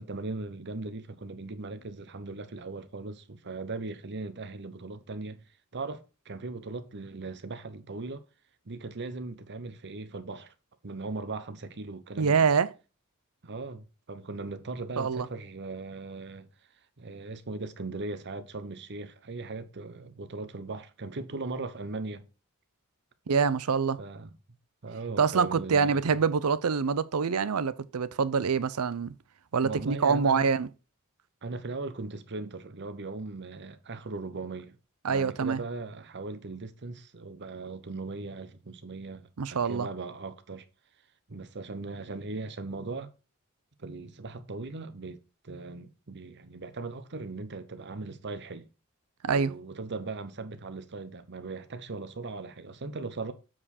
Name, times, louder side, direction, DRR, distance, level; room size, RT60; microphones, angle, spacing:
voice 1, 0.0-5.4 5.7-8.2 8.7-10.5 10.8-12.5 13.4-16.5 17.0-22.2 24.0-24.4 24.8-26.1 29.6-30.5 31.4-34.8 35.1-40.6 41.3-43.1 43.8-48.7 49.3-53.3, right 3 dB, 55° right, 0.9 m, -39 dB
voice 2, 12.2-12.7 15.0-15.3 23.3-24.0 25.2-29.1 29.5-30.7 35.0-35.6 39.4-39.9 49.2-49.5, right 5 dB, 90° right, 0.6 m, -25 dB
7.6 x 4.8 x 4.2 m
head